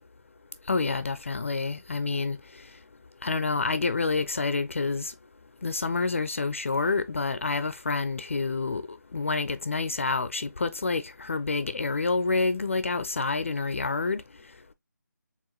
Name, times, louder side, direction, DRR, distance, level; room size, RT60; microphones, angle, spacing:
voice 1, 0.7-2.4 3.2-5.1 5.6-14.2, left 3 dB, 45° left, 0.4 m, -28 dB
4.7 x 3.5 x 2.9 m
figure-of-eight pair, 170°, 10 cm